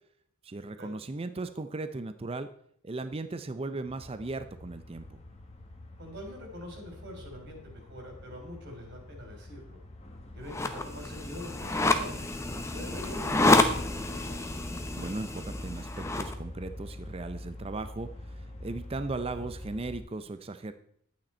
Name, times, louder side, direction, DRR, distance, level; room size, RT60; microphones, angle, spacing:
voice 1, 0.4-2.5 2.8-5.2 15.0-20.7, right 3 dB, 25° right, 10 dB, 0.4 m, -37 dB
sound 1, 3.9-20.0, left 1 dB, 30° left, 1.4 m, -45 dB
voice 2, 6.0-9.8 10.3-12.3 12.7-14.5, left 1 dB, 50° right, 2 dB, 3.4 m, -44 dB
sound 2, 10.5-16.3, left 2 dB, 15° left, 0.7 m, -28 dB
11.5 x 8.8 x 4.4 m, 0.67 s
head